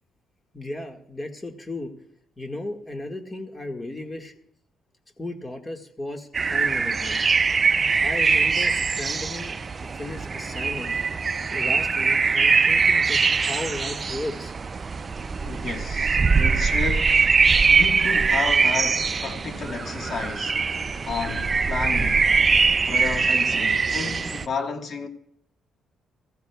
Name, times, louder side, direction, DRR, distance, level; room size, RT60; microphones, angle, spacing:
voice 1, 0.5-1.9 2.4-4.3 5.2-7.2 8.0-9.6 9.9-11.0 11.5-14.5, left 1 dB, 20° left, 1.8 m, -35 dB
sound 1, 6.3-24.5, right 5 dB, 35° right, 0.4 m, -22 dB
voice 2, 15.4-17.3 17.7-20.6 21.1-22.4 22.9-25.1, left 5 dB, 50° left, 1.5 m, -32 dB
23.5 x 14.5 x 2.3 m
cardioid pair, 90°, 0 cm